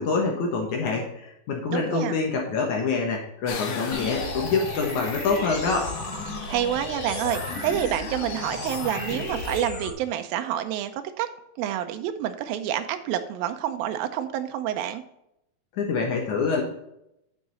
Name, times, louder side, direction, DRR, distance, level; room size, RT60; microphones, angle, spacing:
voice 1, 0.0-5.9 15.7-16.6, left 4 dB, 60° left, 0 dB, 2.4 m, -26 dB
voice 2, 1.7-2.2 6.5-11.3 11.6-15.0, right 11 dB, 80° right, 8 dB, 2.5 m, -28 dB
sound 1, 3.5-9.7, left 5 dB, 90° left, 3.4 m, -39 dB
sound 2, 3.9-9.9, left 2 dB, 35° left, 1.2 m, -34 dB
10.5 x 6.3 x 4.1 m, 0.82 s
omnidirectional pair, 4.3 m